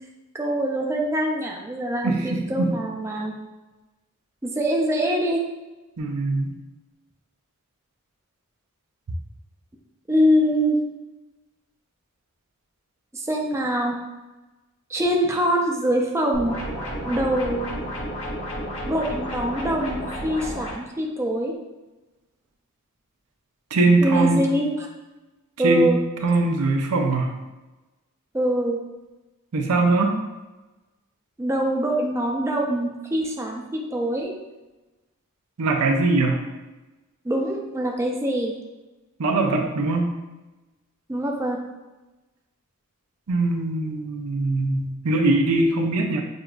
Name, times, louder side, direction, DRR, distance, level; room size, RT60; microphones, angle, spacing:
voice 1, 0.3-3.3 4.4-5.4 10.1-10.8 13.1-14.0 14.9-16.6 17.0-17.7 18.8-21.5 24.0-24.9 25.6-26.0 28.3-28.8 31.4-34.3 37.2-38.5 41.1-41.6, right 1 dB, 10° right, 0 dB, 0.4 m, -24 dB
voice 2, 2.0-2.7 6.0-6.5 23.7-24.4 25.6-25.9 26.2-27.3 29.5-30.1 35.6-36.4 39.2-40.1 43.3-46.2, right 2 dB, 85° right, 3 dB, 0.6 m, -21 dB
sound 1, 16.3-20.7, equal, 60° left, 1.1 m, -31 dB
6.3 x 2.4 x 2.3 m, 1.1 s
head